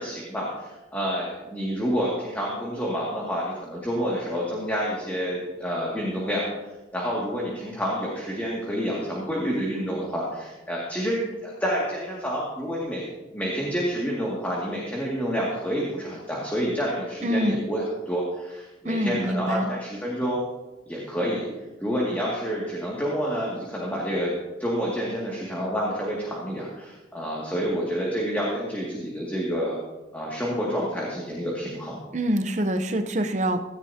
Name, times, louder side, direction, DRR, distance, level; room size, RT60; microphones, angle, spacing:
voice 1, 0.0-6.5 6.9-13.0 13.3-20.4 20.9-21.5 21.8-24.3 24.6-29.8 30.1-31.9, equal, 10° left, -5 dB, 2.2 m, -28 dB
voice 2, 17.2-17.6 18.8-19.7 32.1-33.6, equal, 40° right, 7 dB, 0.7 m, -25 dB
17.5 x 14.0 x 2.8 m, 1.1 s
head